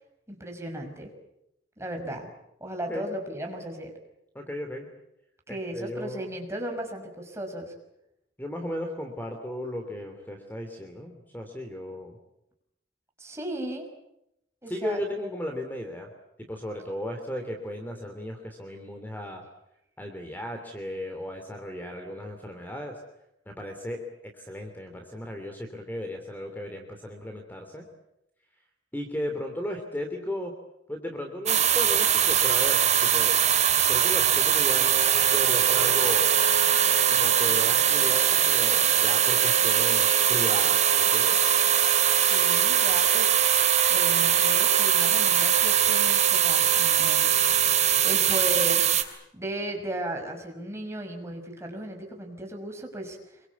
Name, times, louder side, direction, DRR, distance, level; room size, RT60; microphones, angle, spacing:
voice 1, 0.3-1.1 1.8-2.3 2.6-3.9 5.5-7.7 13.2-13.9 14.6-15.3 42.1-43.5 43.9-47.3 48.0-48.8 49.3-53.4, right 1 dB, 15° right, 2 dB, 5.7 m, -35 dB
voice 2, 4.3-4.9 5.5-6.3 8.4-12.2 14.7-16.1 16.5-19.4 20.0-23.0 23.5-24.0 24.3-27.9 28.9-30.5 30.9-33.4 33.9-36.3 37.1-41.4, left 1 dB, 10° left, 4 dB, 3.1 m, -35 dB
sound 1, 31.5-49.0, right 10 dB, 40° right, 3.0 m, -22 dB
Wind instrument woodwind instrument, 35.1-48.5, right 6 dB, 80° right, 2.2 m, -33 dB
27.5 x 23.5 x 8.3 m, 0.83 s
head